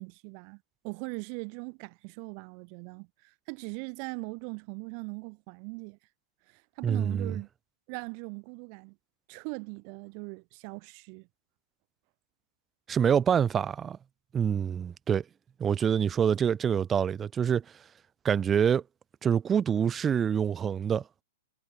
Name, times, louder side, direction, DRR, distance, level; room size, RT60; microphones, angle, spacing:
voice 1, 0.0-6.0 6.5-7.5 7.9-9.0 9.3-11.3, right 40 dB or more, 40° right, 5.6 m, -40 dB
voice 2, 6.8-7.3 12.9-14.0 14.3-15.2 15.6-17.6 18.2-18.8 19.2-21.0, right 8 dB, 20° right, 0.3 m, -26 dB
figure-of-eight pair, 105°, 0 cm